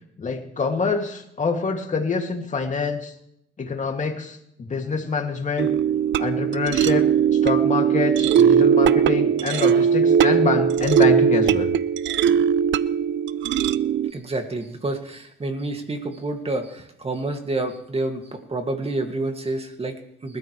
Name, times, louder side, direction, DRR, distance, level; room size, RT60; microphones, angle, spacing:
voice 1, 0.2-3.1 3.6-5.7 6.2-7.1 7.3-11.7, left 4 dB, 40° left, 3 dB, 2.5 m, -26 dB
sound 1, 5.6-14.1, right 8 dB, 70° right, 0.6 m, -19 dB
voice 2, 14.1-20.4, right 2 dB, 30° right, 5 dB, 2.3 m, -29 dB
29.5 x 13.5 x 3.3 m, 0.76 s
cardioid pair, 90°, 20 cm